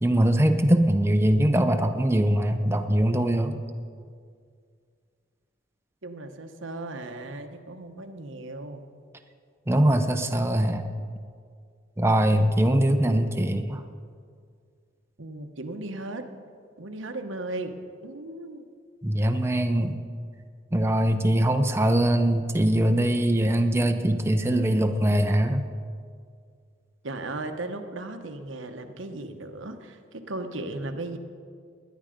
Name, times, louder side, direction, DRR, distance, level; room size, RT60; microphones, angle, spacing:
voice 1, 0.0-3.6 9.7-10.9 12.0-13.8 19.0-20.0 20.7-25.7, right 1 dB, 15° right, 6 dB, 0.6 m, -22 dB
voice 2, 6.0-8.8 15.2-16.3 16.8-17.8 18.0-18.6 27.0-31.2, right 2 dB, 90° right, 6 dB, 1.1 m, -36 dB
20.0 x 10.5 x 5.2 m, 2.1 s
head